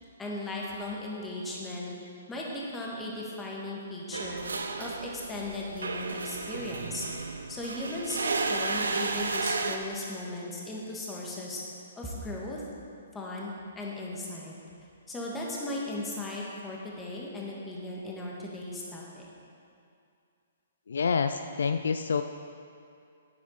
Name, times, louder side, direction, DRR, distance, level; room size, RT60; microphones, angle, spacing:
voice 1, 0.2-1.9 2.3-4.4 4.8-7.1 7.5-11.6 12.0-12.7 13.1-14.5 15.1-19.2, left 1 dB, 10° left, -4 dB, 1.9 m, -37 dB
sound 1, 4.1-9.8, right 3 dB, 75° right, 0.7 m, -33 dB
voice 2, 20.9-22.2, left 5 dB, 70° left, 9 dB, 0.4 m, -27 dB
9.5 x 9.4 x 4.1 m, 2.5 s
figure-of-eight pair, 125°, 0 cm